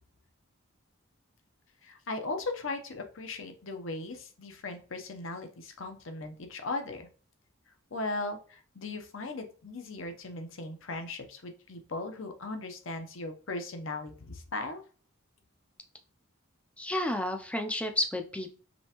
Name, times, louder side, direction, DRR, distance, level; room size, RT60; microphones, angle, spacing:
voice 1, 1.8-7.1 7.9-14.8, left 2 dB, 65° left, 6 dB, 0.8 m, -38 dB
voice 2, 16.8-18.5, left 1 dB, 5° left, 5 dB, 0.4 m, -31 dB
5.3 x 3.4 x 2.9 m, 0.39 s
head